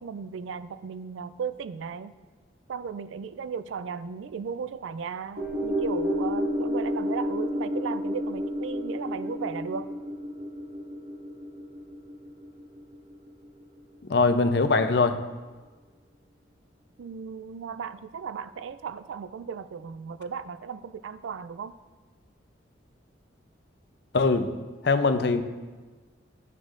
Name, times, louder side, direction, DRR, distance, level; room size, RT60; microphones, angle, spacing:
voice 1, 0.0-2.1 2.7-9.9 17.0-21.8, right 6 dB, 85° right, 14 dB, 0.3 m, -36 dB
sound 1, 5.4-13.8 14.1-14.2, equal, 50° right, 1.8 m, -31 dB
voice 2, 14.1-15.2 24.1-24.5 24.8-25.4, left 3 dB, 60° left, 9 dB, 0.5 m, -22 dB
12.0 x 6.3 x 2.5 m, 1.3 s
head